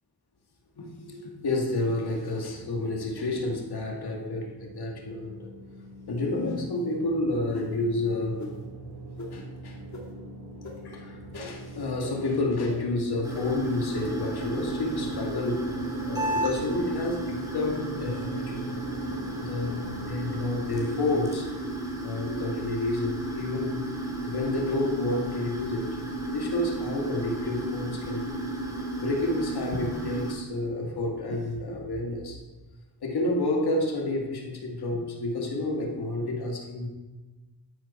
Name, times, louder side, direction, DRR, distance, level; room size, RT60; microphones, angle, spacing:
voice 1, 0.8-5.5 6.1-8.4 9.3-9.8 10.8-15.7 16.1-18.8 19.4-21.5 22.0-23.9 24.2-26.0 26.3-28.3 29.0-32.4 33.0-36.9, left 2 dB, 85° left, 0 dB, 2.4 m, -30 dB
sound 1, 2.1-20.8, right 2 dB, 90° right, 1.5 m, -43 dB
sound 2, 6.4-6.8 7.5-7.7 8.4-8.5 9.2-9.3 9.9-10.0 10.6-10.7 11.3-11.4 12.0-12.1 12.7-12.8 13.3-13.4, left 2 dB, 50° left, 2.7 m, -38 dB
sound 3, 13.2-30.3, right 1 dB, 10° right, 2.8 m, -33 dB
13.0 x 9.5 x 4.5 m, 1.2 s
wide cardioid pair, 125°, 38 cm